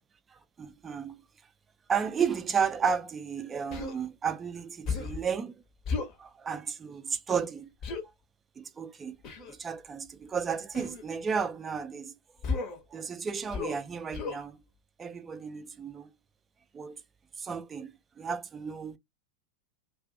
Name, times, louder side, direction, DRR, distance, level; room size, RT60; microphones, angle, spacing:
voice 1, 0.3-1.2 1.9-5.6 6.2-7.7 8.6-9.2 9.5-12.2 12.9-14.6 15.0-16.1 16.7-17.0 17.4-19.0, right 6 dB, 20° right, 0.3 m, -33 dB
Human voice, 3.7-4.0 4.8-5.2 5.8-6.2 7.8-8.0 9.2-9.5 10.7-11.0 12.4-12.8 13.5-13.8 14.1-14.4, left 4 dB, 35° left, 0.7 m, -33 dB
2.4 x 2.4 x 2.4 m
figure-of-eight pair, 90°, 0 cm